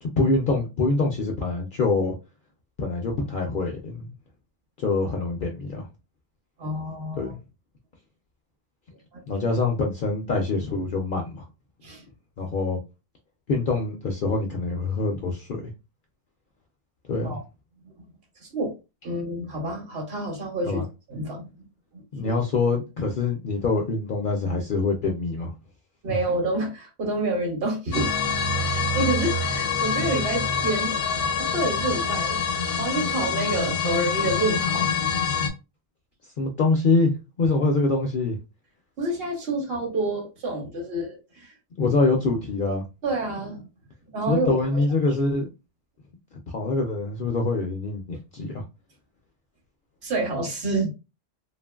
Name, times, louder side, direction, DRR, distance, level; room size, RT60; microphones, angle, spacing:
voice 1, 0.0-2.2 2.8-4.0 4.8-5.8 7.2-7.4 9.3-11.4 12.4-12.8 13.5-15.5 17.1-17.4 20.7-20.8 22.1-25.5 36.4-38.3 41.8-42.8 44.3-45.5 46.5-48.6, left 3 dB, 60° left, 0.5 m, -25 dB
voice 2, 6.6-7.3 9.1-9.2 11.8-12.1 17.2-17.4 18.4-18.7 19.0-20.8 21.1-21.5 21.9-22.3 26.0-28.1 28.6-31.0 31.4-34.9 39.0-41.5 43.0-43.7 44.1-44.8 50.0-50.9, right 2 dB, 55° right, 1.0 m, -28 dB
sound 1, 27.9-35.5, left 5 dB, 75° left, 0.9 m, -25 dB
2.8 x 2.5 x 2.2 m
omnidirectional pair, 1.2 m